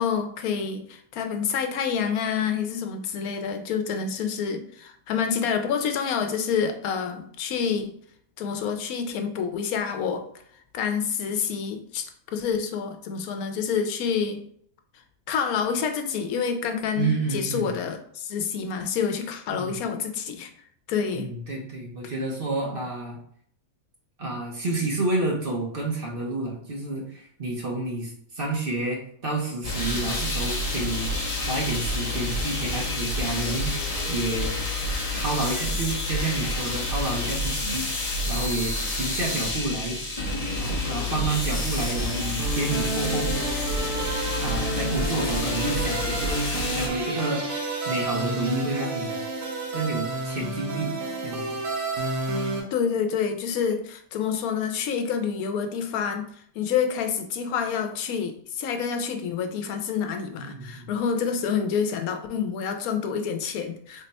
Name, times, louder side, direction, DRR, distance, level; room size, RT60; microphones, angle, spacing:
voice 1, 0.0-7.9 8.4-10.2 10.7-14.4 15.3-20.5 20.9-21.3 52.7-56.3 56.5-64.1, left 6 dB, 85° left, 6 dB, 1.1 m, -28 dB
voice 2, 17.0-17.7 19.5-19.8 21.1-23.2 24.2-31.1 31.5-34.6 35.1-37.9 38.2-40.0 40.6-43.4 44.4-46.4 46.7-47.4 47.8-49.2 49.7-51.6 60.4-60.9, right 2 dB, 50° right, -2 dB, 0.8 m, -29 dB
sound 1, 29.6-46.9, left 1 dB, 40° left, 0.5 m, -28 dB
sound 2, 42.4-52.6, right 2 dB, 65° right, 1.2 m, -30 dB
3.7 x 2.1 x 4.0 m, 0.64 s
omnidirectional pair, 1.5 m